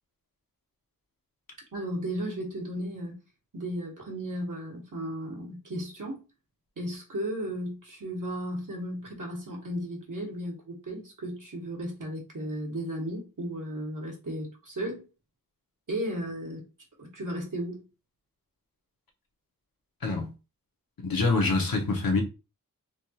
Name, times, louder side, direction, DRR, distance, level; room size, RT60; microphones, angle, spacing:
voice 1, 1.7-3.2 3.5-6.2 6.8-15.1 15.9-16.6 17.0-17.8, equal, 65° right, 1.2 m, -35 dB
voice 2, 21.0-22.2, left 3 dB, 80° left, 0.8 m, -25 dB
3.4 x 2.3 x 2.8 m
wide cardioid pair, 65°, 35 cm